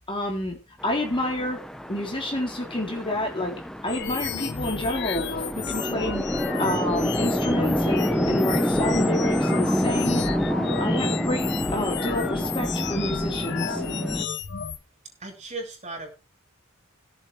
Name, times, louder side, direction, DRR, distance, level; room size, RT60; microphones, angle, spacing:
voice 1, 0.1-1.6 1.9-3.5 3.8-6.2 6.6-10.2 10.8-11.4 11.7-13.8, left 1 dB, 25° left, 1 dB, 3.8 m, -29 dB
Chatter / Traffic noise roadway noise / Train, 0.8-14.3, equal, ahead, 1.0 m, -27 dB
sound 1, 3.9-14.8, left 6 dB, 55° left, 1.1 m, -32 dB
voice 2, 15.2-16.1, right 2 dB, 35° right, 3 dB, 6.1 m, -36 dB
17.0 x 7.8 x 4.7 m, 0.30 s
head